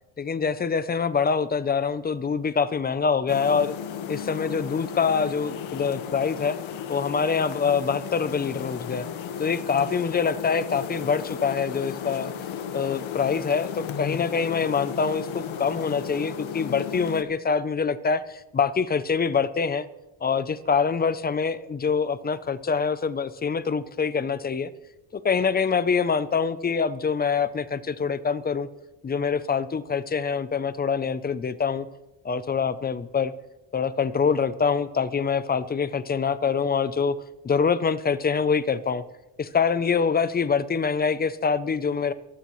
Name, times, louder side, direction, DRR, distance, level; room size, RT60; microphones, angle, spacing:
voice 1, 0.2-3.7 4.1-6.6 6.9-9.1 9.4-12.3 12.7-19.9 20.2-24.7 25.1-28.7 29.0-31.9 32.2-33.3 33.7-37.2 37.4-39.0 39.4-42.1, left 5 dB, 20° left, 14 dB, 0.4 m, -25 dB
sound 1, 3.3-17.2, left 8 dB, 70° left, 1.3 m, -34 dB
22.5 x 15.5 x 3.1 m, 1.0 s
cardioid pair, 170°, 49 cm